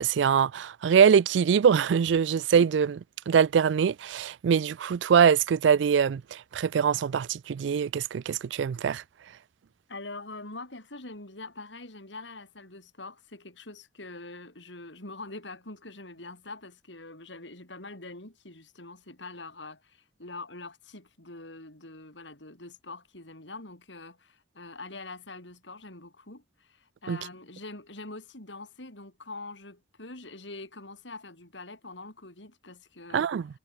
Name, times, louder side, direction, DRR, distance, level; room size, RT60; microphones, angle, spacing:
voice 1, 0.0-3.0 3.3-9.0 27.1-27.2 33.1-33.5, right 7 dB, 75° right, 0.3 m, -23 dB
voice 2, 9.9-33.3, left 2 dB, 75° left, 5.3 m, -44 dB
head